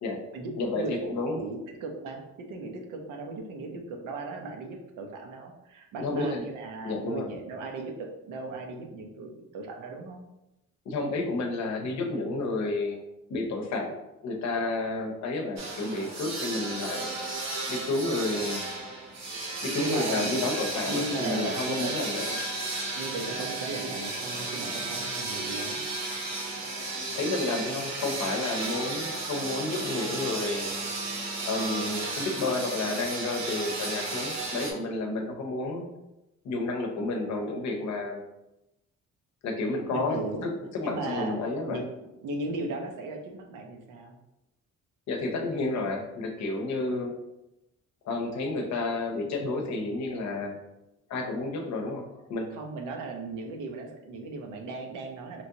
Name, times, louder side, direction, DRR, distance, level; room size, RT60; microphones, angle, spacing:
voice 1, 0.6-1.4 6.0-6.4 6.8-7.3 10.9-13.0 13.3-14.0 14.2-17.1 17.7-18.6 19.6-22.4 27.2-30.7 31.4-35.9 36.4-38.2 39.4-41.8 45.1-47.1 48.0-50.6 51.1-52.5, left 2 dB, 65° left, 2 dB, 0.7 m, -31 dB
voice 2, 1.3-10.2 19.7-20.5 20.9-21.9 23.0-25.8 39.9-40.5 40.8-41.4 41.7-41.9 42.2-44.2 46.8-47.1 52.5-55.4, right 2 dB, 90° right, 2 dB, 0.6 m, -36 dB
sound 1, 15.6-34.7, right 2 dB, 60° right, 0.9 m, -33 dB
3.0 x 2.5 x 2.8 m, 0.93 s
cardioid pair, 90°, 30 cm